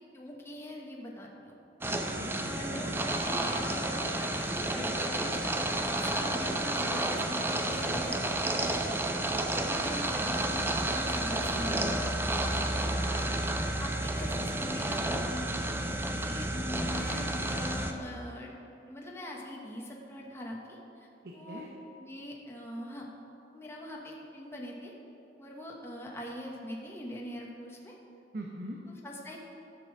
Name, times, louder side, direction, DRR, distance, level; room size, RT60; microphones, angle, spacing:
voice 1, 0.0-1.6 2.3-8.8 9.1-12.6 13.0-13.3 13.6-15.6 16.0-21.7 22.0-23.1 23.5-24.9 25.4-27.9 28.9-29.4, left 1 dB, 15° left, -2 dB, 1.2 m, -42 dB
sound 1, 1.8-17.9, right 1 dB, 15° right, 0.6 m, -31 dB
voice 2, 1.9-2.9 11.3-13.2 21.2-21.7 28.3-28.8, right 1 dB, 65° right, 0 dB, 1.0 m, -43 dB
11.5 x 6.9 x 6.2 m, 2.8 s
head